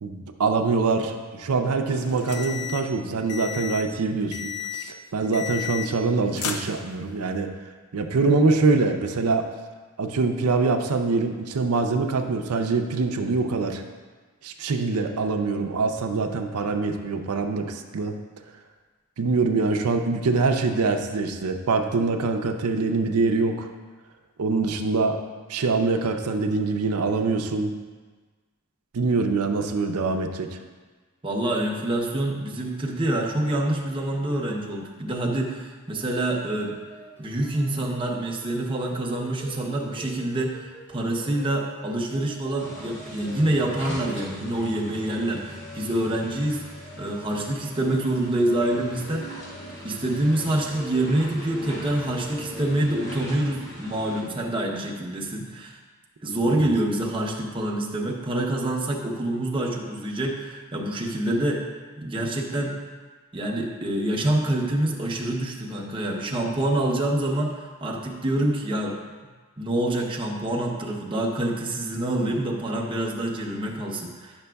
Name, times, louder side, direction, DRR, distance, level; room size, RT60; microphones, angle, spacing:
voice 1, 0.0-7.5 7.9-9.5 10.0-13.8 14.4-18.1 19.2-23.7 24.4-25.2 25.5-27.7 28.9-30.6 56.5-56.7, right 3 dB, 90° right, 5 dB, 0.5 m, -24 dB
sound 1, 1.9-2.9 3.3-3.9 4.3-4.9 5.3-6.1 6.4-7.2, left 8 dB, 85° left, 0.6 m, -33 dB
voice 2, 31.2-36.7 37.2-46.6 47.0-49.4 49.8-55.8 56.2-61.6 62.0-62.8 63.3-69.0 69.6-74.3, right 1 dB, 25° right, -1 dB, 0.7 m, -26 dB
sound 2, 35.9-52.8, equal, 10° left, 0.8 m, -46 dB
sound 3, 42.6-54.2, equal, 55° left, 2.1 m, -40 dB
9.4 x 5.9 x 2.3 m, 1.4 s
head